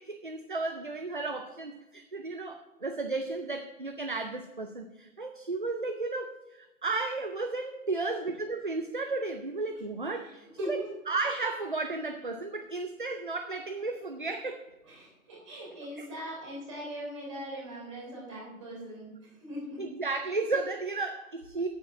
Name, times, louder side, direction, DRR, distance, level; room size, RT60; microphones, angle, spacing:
voice 1, 0.0-10.8 11.1-14.6 16.0-16.1 19.8-21.7, right 3 dB, 40° right, 7 dB, 0.4 m, -34 dB
voice 2, 14.8-19.8 21.5-21.6, equal, 20° right, -3 dB, 3.4 m, -40 dB
8.5 x 8.4 x 5.9 m, 1.0 s
hypercardioid pair, 180°, 41 cm